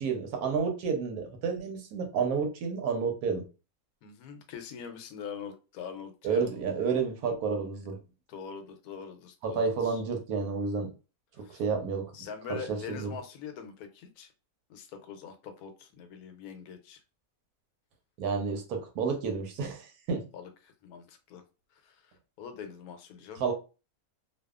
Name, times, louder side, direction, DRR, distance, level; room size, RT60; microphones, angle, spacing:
voice 1, 0.0-3.4 6.2-8.0 9.4-10.9 11.4-12.1 12.5-13.1 18.2-20.2 23.4-23.5, right 5 dB, 90° right, 1.2 m, -30 dB
voice 2, 4.0-6.5 8.3-10.0 11.4-11.6 12.1-14.3 14.7-17.0 20.3-21.4 21.7-23.4, left 7 dB, 85° left, 1.1 m, -43 dB
2.7 x 2.3 x 2.3 m
omnidirectional pair, 1.5 m